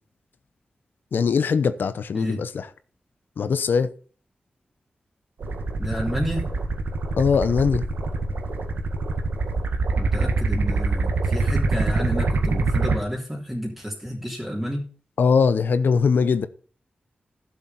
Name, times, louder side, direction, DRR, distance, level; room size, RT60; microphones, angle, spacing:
voice 1, 1.1-2.7 3.4-3.9 7.2-7.9 15.2-16.5, left 5 dB, 80° left, 0.9 m, -21 dB
sound 1, 5.4-13.0, right 3 dB, 80° right, 1.9 m, -25 dB
voice 2, 5.8-6.5 10.0-14.9, equal, 10° right, 3.3 m, -30 dB
12.0 x 7.2 x 5.7 m
wide cardioid pair, 75°, 3 cm